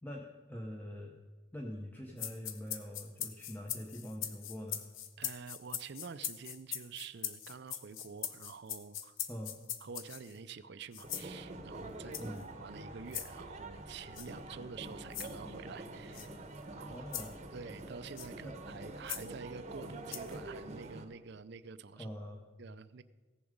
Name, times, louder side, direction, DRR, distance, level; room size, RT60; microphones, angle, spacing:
voice 1, 0.0-1.2 1.5-4.8 9.3-9.6 12.2-12.5 16.9-17.3 18.4-18.6 22.0-22.4, equal, 10° left, 0 dB, 0.8 m, -44 dB
sound 1, 2.2-10.4 10.9-11.3 12.1-12.4 13.1-13.3 14.2-14.3 15.1-15.3 16.1-16.3 17.1-17.3 18.2-18.3 19.1-19.2 20.1-20.4, left 10 dB, 75° left, 0.8 m, -41 dB
voice 2, 5.2-9.2 9.8-12.3 12.6-16.4 16.7-17.0 17.5-22.1 22.6-23.0, right 5 dB, 55° right, 14 dB, 0.5 m, -48 dB
sound 2, 11.0-21.0, right 2 dB, 35° right, 0.9 m, -46 dB
16.0 x 7.0 x 5.1 m, 1.3 s
head